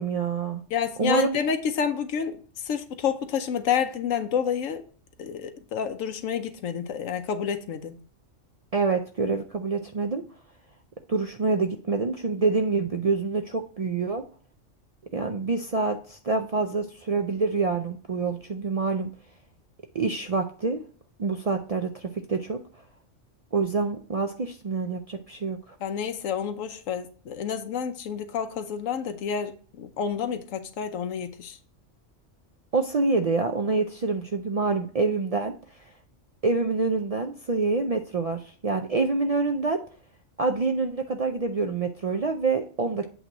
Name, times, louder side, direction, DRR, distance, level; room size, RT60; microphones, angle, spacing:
voice 1, 0.0-0.6 1.0-1.4 8.7-10.2 11.1-14.2 15.1-19.1 19.9-20.8 21.2-22.6 23.5-25.8 32.7-35.5 36.4-39.8 40.4-43.1, right 4 dB, 60° right, 5 dB, 0.3 m, -26 dB
voice 2, 0.7-4.8 5.2-7.9 25.8-31.6, left 7 dB, 90° left, 8 dB, 1.1 m, -29 dB
8.2 x 2.9 x 5.9 m, 0.43 s
omnidirectional pair, 1.3 m